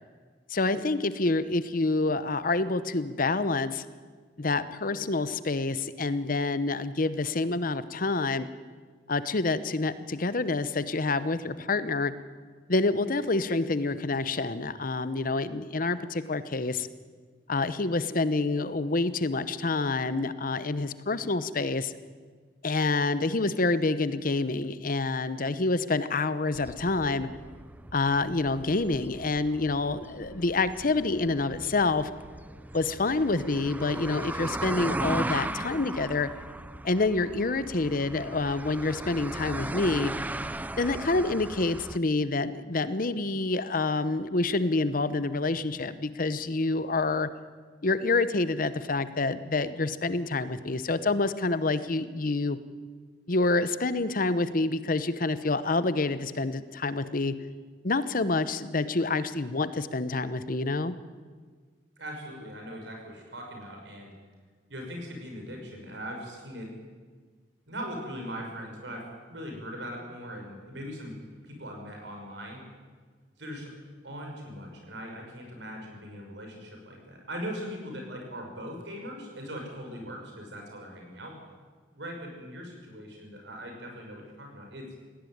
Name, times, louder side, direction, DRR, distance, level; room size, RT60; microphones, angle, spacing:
voice 1, 0.5-3.8 4.4-8.5 9.1-12.1 12.7-16.9 17.5-21.9 22.6-27.3 27.9-32.1 32.7-36.3 36.8-40.1 40.8-47.3 47.8-52.6 53.3-57.3 57.8-60.9, left 3 dB, 50° left, 14 dB, 0.9 m, -27 dB
sound 1, 26.5-42.0, right 1 dB, 10° right, 0.5 m, -37 dB
voice 2, 62.0-64.1 64.7-66.7 67.7-71.1 71.4-72.6 73.4-73.7 74.0-81.4 81.9-84.9, equal, 80° right, 2 dB, 6.2 m, -40 dB
19.0 x 16.5 x 9.4 m, 1.5 s
head